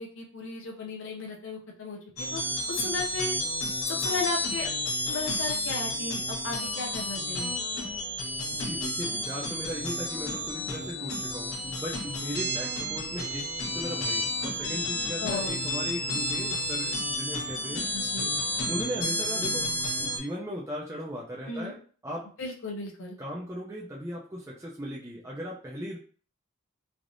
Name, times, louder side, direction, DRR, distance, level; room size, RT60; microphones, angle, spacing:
voice 1, 0.0-2.4 2.7-3.3 3.9-4.7 5.1-7.5 15.2-15.6 17.9-18.3 21.5-21.7 22.4-23.2, left 3 dB, 60° left, 1 dB, 0.5 m, -35 dB
sound 1, 2.2-20.2, left 1 dB, 85° left, 1.0 m, -31 dB
voice 2, 8.5-13.5 13.7-17.9 18.7-22.3 23.2-26.0, equal, 15° right, -4 dB, 0.4 m, -37 dB
3.3 x 2.4 x 2.5 m, 0.41 s
head